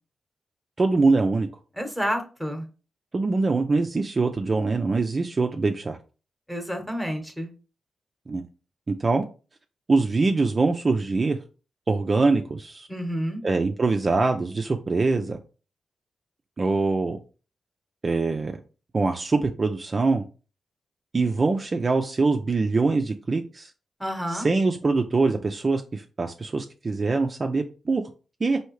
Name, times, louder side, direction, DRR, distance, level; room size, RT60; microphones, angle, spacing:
voice 1, 0.8-1.5 3.1-6.0 8.3-8.4 9.0-9.2 9.9-11.4 11.9-12.9 13.4-15.4 16.6-17.2 18.0-18.5 18.9-20.2 21.1-23.7 24.3-28.0 28.4-28.6, right 3 dB, 35° right, 0.4 m, -23 dB
voice 2, 1.8-2.6 6.5-7.5 12.9-13.4 24.0-24.5, equal, ahead, 1.0 m, -29 dB
4.4 x 2.7 x 3.1 m
cardioid pair, 100°, 0 cm